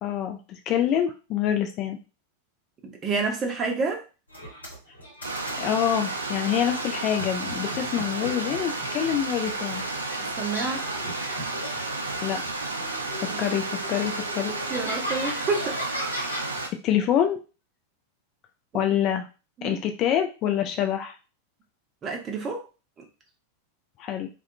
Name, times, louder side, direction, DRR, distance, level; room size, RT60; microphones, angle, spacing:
voice 1, 0.0-2.0 5.6-9.8 12.2-12.4 13.4-14.5 16.2-16.5 16.8-17.4 18.7-19.3 19.6-21.2 24.0-24.3, left 10 dB, 35° left, 5 dB, 0.3 m, -26 dB
voice 2, 2.8-4.0 10.2-10.9 13.3-13.4 14.7-16.0 18.7-18.9 19.6-19.8 22.0-22.6, right 4 dB, 25° right, 1 dB, 0.6 m, -29 dB
sound 1, 4.3-6.0 6.7-10.0 10.5-12.5 12.8-16.5, equal, 80° left, 1.0 m, -38 dB
Stream, 5.2-16.7, right 2 dB, 75° right, 0.4 m, -32 dB
2.4 x 2.2 x 2.5 m, 0.32 s
figure-of-eight pair, 90°, 0 cm